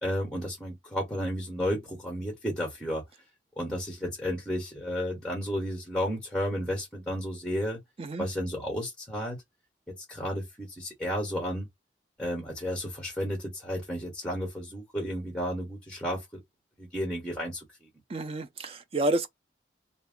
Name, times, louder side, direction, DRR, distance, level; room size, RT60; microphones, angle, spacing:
voice 1, 0.0-3.1 3.6-7.8 8.2-9.4 9.9-11.7 12.2-16.4 16.8-17.9, equal, 5° left, 1.1 m, -32 dB
voice 2, 18.1-19.3, right 2 dB, 30° right, 0.4 m, -29 dB
2.5 x 2.2 x 3.6 m
head